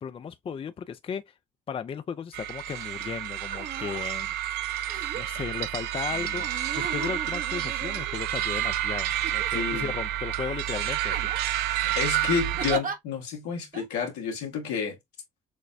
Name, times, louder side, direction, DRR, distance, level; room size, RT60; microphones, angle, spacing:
voice 1, 0.0-1.3 1.7-4.3 5.1-6.5 6.7-11.3, left 7 dB, 35° left, 0.4 m, -35 dB
sound 1, 2.3-12.8, right 13 dB, 70° right, 0.4 m, -30 dB
sound 2, 2.7-2.9 3.4-4.1 4.9-5.4 6.4-8.5 9.2-10.0 10.4-10.6 11.0-11.6 12.6-13.0 13.7-13.9, right 6 dB, 50° right, 0.9 m, -38 dB
voice 2, 9.5-9.9 11.7-15.0, left 6 dB, 80° left, 1.4 m, -30 dB
6.2 x 2.1 x 2.5 m
hypercardioid pair, 50°, 17 cm